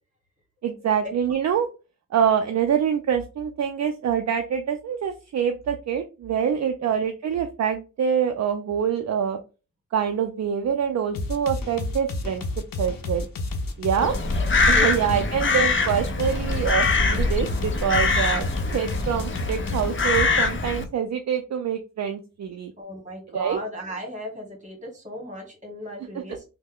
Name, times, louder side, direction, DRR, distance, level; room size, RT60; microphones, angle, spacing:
voice 1, 0.6-1.7 2.1-9.4 9.9-12.4 12.8-13.3 13.8-14.2 14.7-18.5 18.7-22.7 23.3-23.6 26.1-26.2, right 8 dB, 55° right, 6 dB, 0.4 m, -25 dB
sound 1, 11.1-15.3 15.9-20.3, left 2 dB, 80° left, 0.7 m, -30 dB
Crow, 14.0-20.8, left 4 dB, 35° left, 0.5 m, -23 dB
voice 2, 14.0-14.3 14.7-15.1 15.3-15.5 22.8-26.4, equal, 20° right, 1 dB, 1.5 m, -36 dB
3.2 x 2.1 x 3.5 m, 0.31 s
cardioid pair, 70°, 34 cm